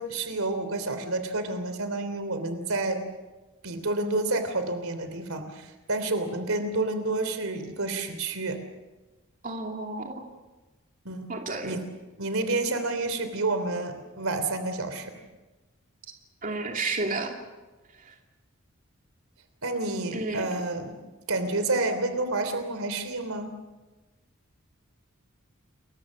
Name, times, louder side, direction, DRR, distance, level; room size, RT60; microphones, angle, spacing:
voice 1, 0.0-3.0 3.6-8.6 11.0-11.3 11.6-11.8 12.2-15.1 19.6-20.9 21.3-23.5, right 2 dB, 90° right, 8 dB, 3.2 m, -29 dB
voice 2, 9.4-10.2 11.3-11.8 16.4-17.4 18.0-18.1 20.1-20.4, right 3 dB, 40° right, 2 dB, 2.7 m, -32 dB
29.0 x 22.5 x 6.4 m, 1.2 s
head